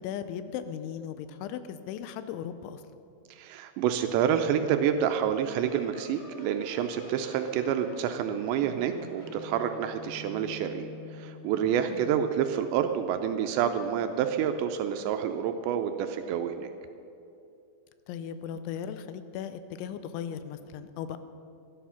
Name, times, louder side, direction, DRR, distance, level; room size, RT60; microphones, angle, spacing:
voice 1, 0.0-2.8 11.9-12.1 18.1-21.2, left 8 dB, 85° left, 11 dB, 3.0 m, -37 dB
voice 2, 3.4-10.9 11.2-16.7, right 9 dB, 80° right, 7 dB, 2.7 m, -28 dB
sound 1, 5.6-11.7, left 2 dB, 60° left, 2.7 m, -47 dB
13.0 x 11.5 x 5.7 m, 2.6 s
omnidirectional pair, 5.4 m